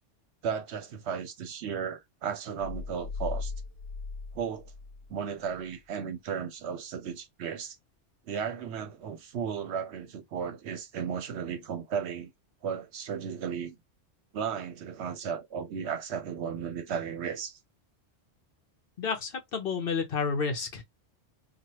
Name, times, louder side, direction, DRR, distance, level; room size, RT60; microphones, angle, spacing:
voice 1, 0.4-3.5 4.3-4.7 5.1-7.8 8.3-12.3 12.6-13.8 14.3-17.6, right 7 dB, 70° right, 0.8 m, -35 dB
sound 1, 2.6-5.1 5.5-5.6, left 4 dB, 80° left, 1.0 m, -38 dB
voice 2, 19.0-20.8, left 5 dB, 55° left, 0.8 m, -30 dB
3.1 x 2.3 x 2.8 m
omnidirectional pair, 1.2 m